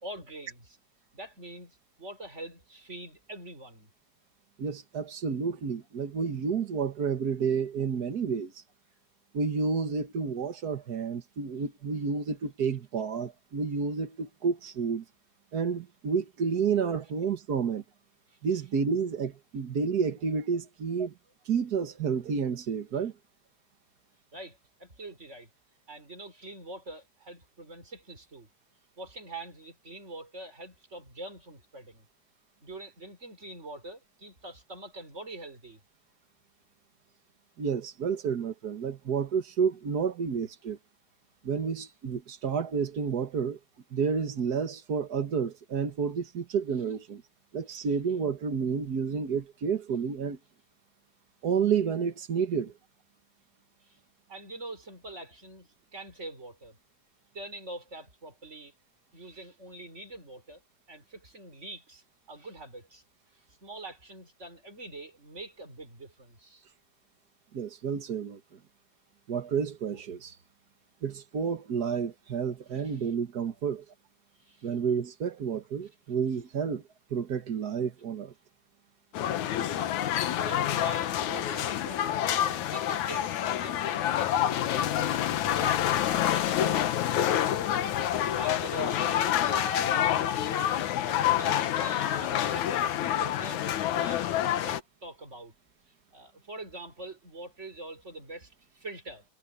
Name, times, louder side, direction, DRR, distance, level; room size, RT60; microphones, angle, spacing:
voice 1, 0.0-0.8 1.1-3.9 18.3-18.4 24.3-25.5 25.9-28.5 29.0-32.1 32.6-35.8 47.8-47.9 53.8-54.0 54.3-56.8 57.3-58.7 59.1-60.6 60.9-63.0 63.3-66.7 72.7-73.1 74.4-74.7 80.1-82.2 82.7-85.8 86.3-87.7 88.1-90.2 90.7-95.5 96.1-99.2, right 2 dB, 20° right, 4.8 m, -44 dB
voice 2, 4.6-8.6 9.3-15.0 15.5-17.8 18.4-21.1 21.4-23.1 37.6-40.8 41.4-43.6 43.9-47.2 47.5-50.4 51.4-52.7 67.5-68.6 69.3-70.4 71.0-73.8 74.6-76.8 77.1-78.3, right 6 dB, 55° right, 1.0 m, -30 dB
sound 1, 79.1-94.8, left 11 dB, 70° left, 2.5 m, -27 dB
omnidirectional pair, 3.7 m